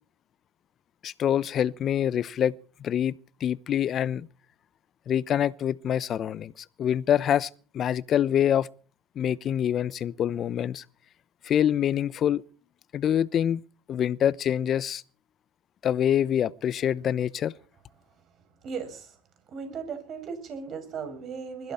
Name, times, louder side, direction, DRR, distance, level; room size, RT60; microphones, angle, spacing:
voice 1, 1.0-2.5 2.8-3.2 3.4-4.3 5.1-8.7 9.2-10.8 11.4-12.4 12.9-13.6 13.9-15.0 15.8-17.5, left 10 dB, 40° left, 0.8 m, -25 dB
voice 2, 18.2-19.2 19.5-21.7, right 6 dB, 45° right, 7.5 m, -37 dB
21.0 x 15.5 x 4.4 m
hypercardioid pair, 95°, 0 cm